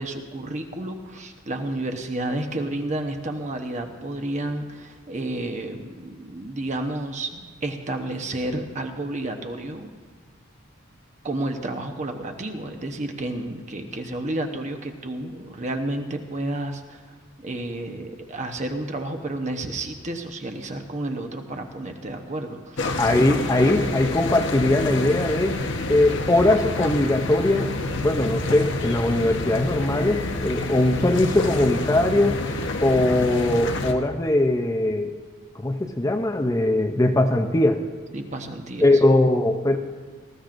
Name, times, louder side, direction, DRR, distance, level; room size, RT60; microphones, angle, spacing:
voice 1, 0.0-9.9 11.2-22.9 38.1-39.0, right 1 dB, 35° right, 5 dB, 1.0 m, -31 dB
sound 1, 22.8-33.9, left 2 dB, 60° left, 1.0 m, -28 dB
voice 2, 23.0-25.6 25.9-27.7 28.0-32.4 32.8-35.2 35.5-37.8 38.8-39.8, left 1 dB, 15° left, 5 dB, 0.6 m, -20 dB
19.0 x 15.0 x 2.6 m, 1.5 s
head